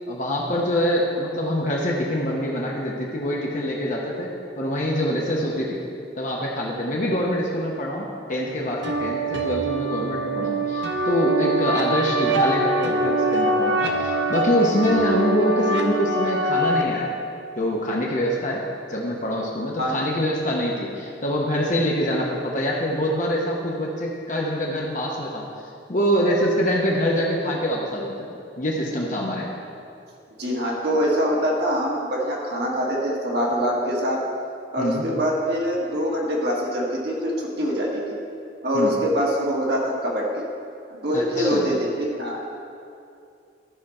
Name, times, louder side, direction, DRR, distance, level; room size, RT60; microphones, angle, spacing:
voice 1, 0.1-5.8 6.2-17.1 17.6-18.6 18.9-25.4 25.9-28.3 28.6-29.5 34.8-35.0 38.7-38.9 41.1-41.7, equal, 45° left, -3 dB, 0.9 m, -25 dB
sound 1, 8.8-16.8, right 1 dB, 85° right, 0.8 m, -23 dB
voice 2, 30.4-34.2 34.7-38.2 38.6-40.5 40.9-42.4, equal, 65° right, -3 dB, 1.7 m, -24 dB
13.0 x 5.1 x 4.3 m, 2.5 s
head